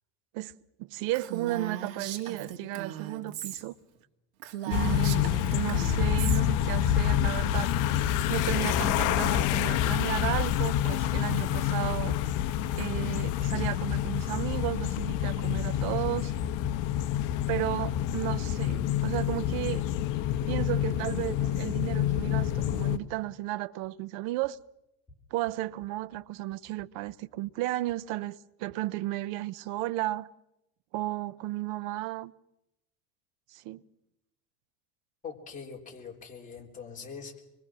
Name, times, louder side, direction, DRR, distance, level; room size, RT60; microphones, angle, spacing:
voice 1, 0.8-3.7 4.6-7.7 8.3-12.2 12.8-16.3 17.5-19.9 20.5-24.6 25.3-30.3 30.9-32.3 33.5-33.8, right 16 dB, 55° right, 0.7 m, -33 dB
Female speech woman speaking, 1.1-3.6 4.0-4.1 4.4-6.4, right 10 dB, 75° right, 2.6 m, -38 dB
sound 1, 4.7-23.0, left 11 dB, 50° left, 1.0 m, -27 dB
voice 2, 35.2-37.4, left 6 dB, 20° left, 3.5 m, -43 dB
24.0 x 22.5 x 6.2 m
supercardioid pair, 145°, 39 cm